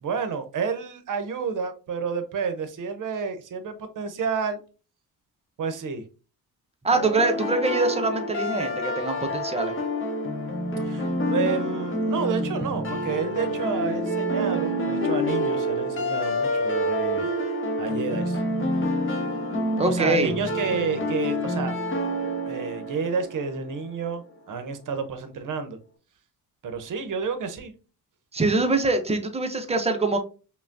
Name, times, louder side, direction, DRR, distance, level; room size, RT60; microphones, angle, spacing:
voice 1, 0.0-4.6 5.6-6.0 10.8-17.3 17.8-18.4 19.9-21.7 22.5-25.8 26.6-27.7, right 5 dB, 55° right, 9 dB, 0.8 m, -30 dB
voice 2, 6.8-9.7 19.8-20.3 28.3-30.2, right 3 dB, 15° right, 5 dB, 0.7 m, -24 dB
sound 1, 6.9-23.8, equal, 30° left, 1.1 m, -27 dB
5.5 x 2.2 x 2.6 m, 0.35 s
cardioid pair, 105°, 38 cm